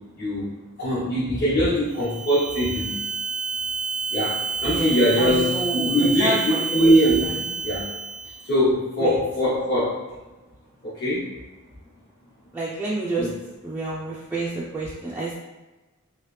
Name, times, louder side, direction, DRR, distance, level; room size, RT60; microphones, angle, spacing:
voice 1, 0.2-0.5 0.8-3.0 4.1-6.4 6.7-7.3 7.6-7.9 8.4-10.0 10.8-11.3 13.2-13.3, equal, 50° left, -11 dB, 1.1 m, -22 dB
sound 1, 1.9-8.5, right 5 dB, 75° right, 0.5 m, -29 dB
voice 2, 4.6-6.9 7.2-7.5 9.0-9.2 12.5-13.3 13.6-15.3, right 2 dB, 10° right, -6 dB, 0.3 m, -29 dB
3.1 x 2.8 x 3.2 m, 1.1 s
head